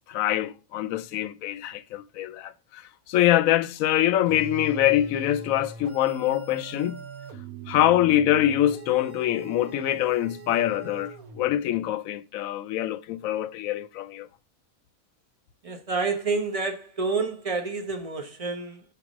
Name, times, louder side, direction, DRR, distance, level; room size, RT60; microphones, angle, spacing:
voice 1, 0.1-2.8 3.1-7.0 7.7-14.3, left 12 dB, 75° left, 1.0 m, -24 dB
sound 1, 4.3-11.7, right 4 dB, 85° right, 1.4 m, -41 dB
voice 2, 15.6-18.8, right 4 dB, 30° right, 0.8 m, -29 dB
4.9 x 4.7 x 6.1 m
omnidirectional pair, 1.5 m